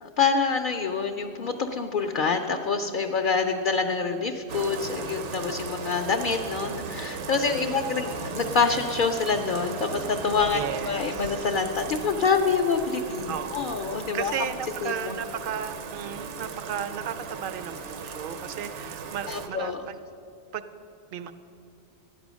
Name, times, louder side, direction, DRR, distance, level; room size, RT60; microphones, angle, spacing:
voice 1, 0.0-14.3 14.8-15.2 19.3-19.8, left 5 dB, 55° left, 3 dB, 0.6 m, -26 dB
Bathtub (filling or washing), 4.5-19.5, right 5 dB, 75° right, 1.0 m, -37 dB
voice 2, 10.5-11.4 13.3-20.0 20.5-20.6 21.1-21.3, right 8 dB, 55° right, 12 dB, 0.7 m, -35 dB
13.0 x 9.0 x 6.2 m, 2.7 s
omnidirectional pair, 1.2 m